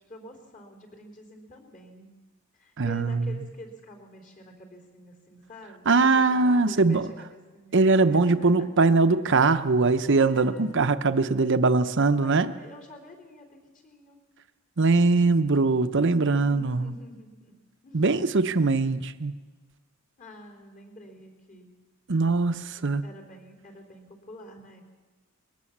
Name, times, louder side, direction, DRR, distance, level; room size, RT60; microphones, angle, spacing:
voice 1, 0.1-2.2 2.5-7.8 8.1-8.7 10.2-11.0 12.2-14.2 16.1-17.6 17.8-18.1 20.2-21.7 23.0-24.8, left 1 dB, 40° left, 3 dB, 4.0 m, -47 dB
voice 2, 2.8-3.4 5.9-7.1 7.7-12.5 14.8-16.9 17.9-19.3 22.1-23.0, right 3 dB, 55° right, 11 dB, 0.8 m, -22 dB
22.0 x 18.0 x 7.3 m, 1.3 s
head